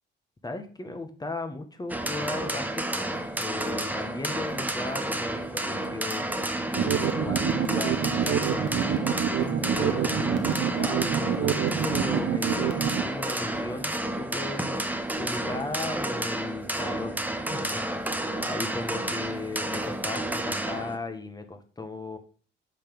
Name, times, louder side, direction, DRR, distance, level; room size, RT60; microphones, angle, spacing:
voice 1, 0.4-14.8 15.1-22.2, left 2 dB, 20° left, 7 dB, 1.6 m, -37 dB
sound 1, 1.9-21.0, right 1 dB, 10° right, 1.1 m, -31 dB
sound 2, 6.7-13.0, right 8 dB, 80° right, 1.1 m, -27 dB
8.5 x 6.0 x 5.5 m, 0.41 s
cardioid pair, 90°, 20 cm